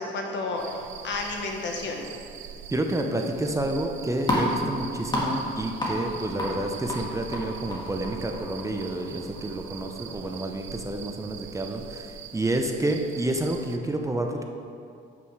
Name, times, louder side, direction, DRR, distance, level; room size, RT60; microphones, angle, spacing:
voice 1, 0.0-2.1, left 3 dB, 65° left, 1 dB, 1.3 m, -31 dB
sound 1, 0.6-13.8, right 9 dB, 75° right, 0.5 m, -43 dB
voice 2, 2.7-14.4, right 1 dB, 15° right, 3 dB, 0.7 m, -29 dB
sound 2, 3.7-10.4, left 1 dB, 20° left, 2.1 m, -32 dB
8.6 x 5.9 x 4.7 m, 2.5 s
cardioid pair, 90°, 20 cm